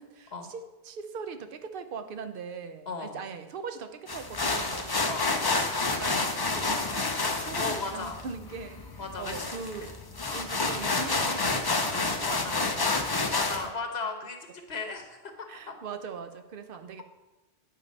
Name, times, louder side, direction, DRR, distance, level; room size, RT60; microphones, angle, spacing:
voice 1, 0.0-5.2 5.8-8.8 9.2-9.9 10.3-13.2 15.5-17.0, right 5 dB, 60° right, 9 dB, 0.8 m, -41 dB
voice 2, 2.9-3.2 5.1-5.3 7.6-8.2 9.0-9.4 12.3-12.6 13.3-15.7, left 4 dB, 80° left, 5 dB, 1.4 m, -36 dB
sound 1, 4.1-13.7, left 3 dB, 25° left, 0.6 m, -29 dB
8.9 x 5.6 x 5.3 m, 1.1 s
omnidirectional pair, 1.1 m